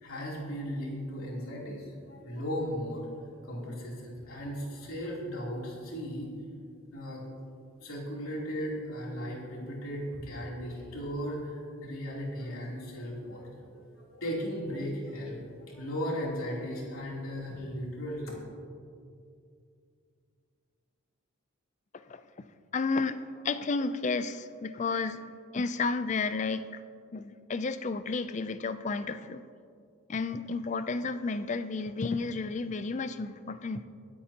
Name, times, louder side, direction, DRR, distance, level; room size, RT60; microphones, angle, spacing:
voice 1, 0.0-6.3 6.9-7.3 7.8-18.3, equal, 80° left, -4 dB, 3.2 m, -36 dB
voice 2, 22.7-25.2 25.5-26.8 27.1-29.4 30.1-33.9, left 4 dB, 35° left, 12 dB, 0.4 m, -32 dB
24.0 x 8.5 x 2.9 m, 2.4 s
head